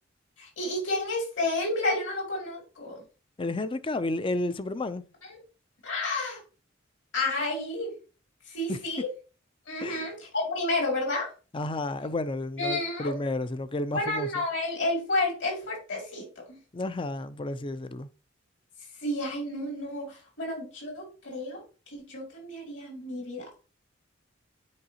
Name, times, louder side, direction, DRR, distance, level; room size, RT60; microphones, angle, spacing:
voice 1, 0.4-3.0 5.3-5.4 5.8-6.4 7.1-7.9 8.5-9.1 9.7-11.3 12.6-13.1 13.9-16.6 19.0-23.6, left 2 dB, 65° left, 2.9 m, -31 dB
voice 2, 3.4-5.0 8.7-8.8 9.8-10.1 11.5-14.4 16.7-18.1, left 2 dB, 25° left, 0.4 m, -31 dB
9.5 x 4.7 x 2.9 m
head